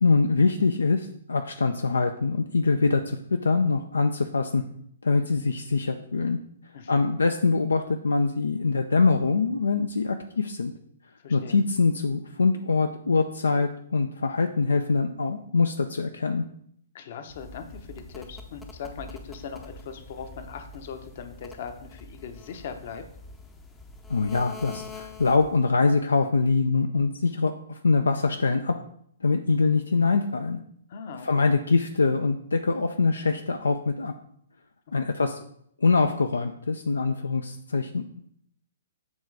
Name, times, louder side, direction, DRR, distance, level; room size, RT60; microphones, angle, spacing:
voice 1, 0.0-4.6 5.0-6.4 6.9-10.7 11.3-16.4 24.1-28.8 29.2-30.6 31.2-34.1 34.9-35.4 35.8-38.2, left 4 dB, 75° left, 6 dB, 0.4 m, -24 dB
voice 2, 6.7-7.1 11.2-11.6 16.9-23.0 30.9-31.5 34.9-35.1, left 6 dB, 50° left, 7 dB, 0.8 m, -40 dB
sound 1, 17.3-25.7, left 3 dB, 10° left, 0.6 m, -45 dB
7.2 x 3.1 x 4.7 m, 0.69 s
figure-of-eight pair, 125°, 0 cm